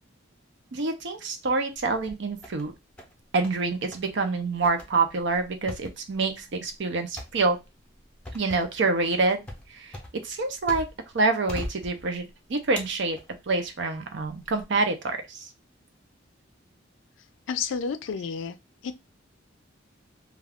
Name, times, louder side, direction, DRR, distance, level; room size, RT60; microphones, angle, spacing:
voice 1, 0.7-2.7 3.3-7.6 8.3-9.4 9.7-10.0 10.2-10.9 11.1-13.2 13.5-15.5, right 3 dB, 65° right, 0.6 m, -26 dB
sound 1, 1.7-2.6 3.0-3.6 3.9-4.1 4.6-11.1 11.5-12.3 12.8-13.7 14.2-14.6, left 1 dB, 5° left, 0.7 m, -41 dB
voice 2, 17.5-18.6 18.8-19.0, left 6 dB, 70° left, 0.4 m, -30 dB
2.3 x 2.3 x 3.4 m
head